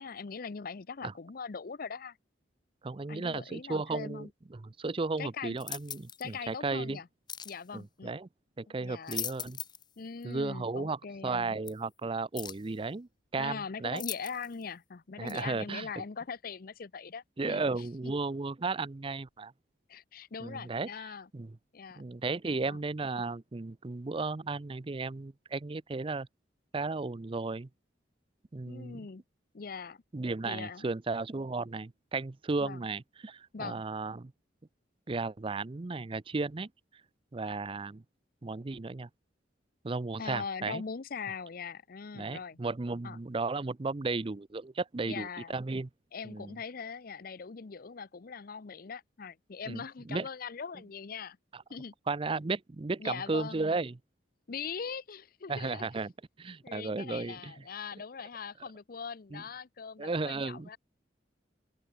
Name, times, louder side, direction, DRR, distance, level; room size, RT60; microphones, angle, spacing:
voice 1, 0.0-2.2 3.1-4.3 5.2-5.6 6.2-7.1 7.4-8.2 8.7-9.2 10.0-11.6 13.4-17.6 18.0-18.1 19.9-21.3 21.7-22.0 22.7-22.8 28.7-29.2 29.5-30.0 30.4-30.9 32.6-32.9 33.5-33.8 40.2-42.6 43.0-43.2 45.1-45.6 46.1-51.4 51.7-51.9 53.0-53.8 54.5-55.9 56.6-60.8, left 5 dB, 50° left, 0.6 m, -41 dB
voice 2, 2.8-7.0 7.7-8.3 8.6-9.6 10.2-14.0 15.2-15.9 17.4-19.5 20.4-20.9 21.3-21.5 22.0-26.3 26.7-27.7 28.5-29.0 30.1-34.3 35.1-36.7 37.3-38.0 38.4-39.1 39.8-40.8 42.2-45.9 46.2-46.5 49.7-50.3 52.1-54.0 55.5-56.1 56.4-57.5 59.3-59.4 60.0-60.7, right 3 dB, 30° right, 0.5 m, -34 dB
sound 1, 5.6-6.3 7.3-7.6 8.8-9.9 10.2-10.3 11.7-11.8 12.4-12.7 14.0-14.6 15.3-15.4, left 8 dB, 25° left, 1.1 m, -40 dB
open air
head